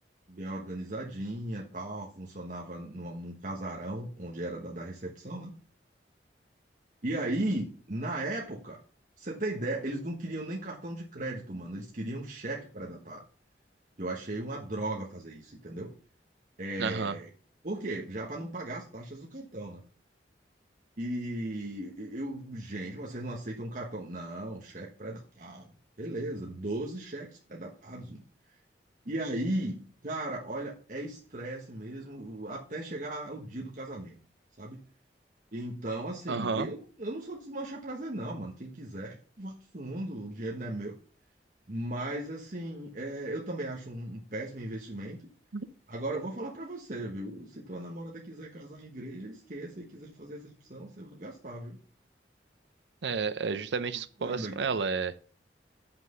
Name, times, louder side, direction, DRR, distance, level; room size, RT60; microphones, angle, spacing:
voice 1, 0.3-5.5 7.0-8.8 9.2-13.2 14.0-15.9 16.6-17.3 17.6-19.8 21.0-25.7 26.0-28.2 29.0-34.2 34.6-34.8 35.5-40.9 41.7-45.2 45.9-51.8 54.2-54.6, right 1 dB, 45° right, 1.2 m, -37 dB
voice 2, 16.8-17.2 36.3-36.7 45.5-45.7 53.0-55.2, right 5 dB, 80° right, 0.6 m, -31 dB
7.7 x 5.9 x 6.8 m
head